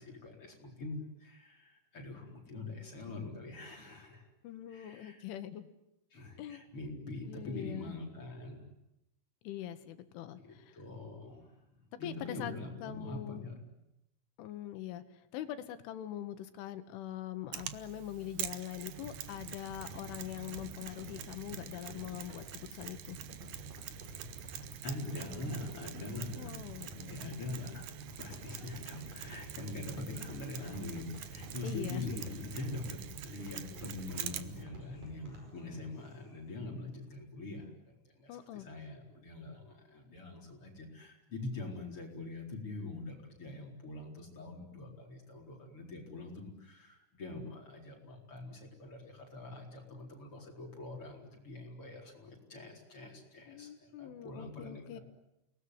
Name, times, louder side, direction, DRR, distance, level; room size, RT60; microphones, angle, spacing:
voice 1, 0.0-4.3 4.7-5.2 6.1-8.6 10.4-11.6 11.9-13.5 24.0-24.5 24.8-55.0, left 2 dB, 30° left, 0 dB, 4.7 m, -44 dB
voice 2, 4.4-5.7 6.4-6.6 7.3-7.9 9.4-10.8 12.0-12.5 12.8-13.4 14.4-23.2 26.4-27.2 30.1-30.4 31.6-32.1 38.3-38.7 53.5-55.0, left 12 dB, 75° left, 10 dB, 3.6 m, -43 dB
Mechanisms, 17.5-34.6, right 12 dB, 85° right, 1.9 m, -46 dB
sound 1, 18.8-35.5, right 1 dB, 45° right, 6.4 m, -50 dB
Human voice / Acoustic guitar, 28.6-36.6, equal, 10° left, 7.4 m, -63 dB
29.0 x 20.0 x 9.7 m, 0.88 s
omnidirectional pair, 5.7 m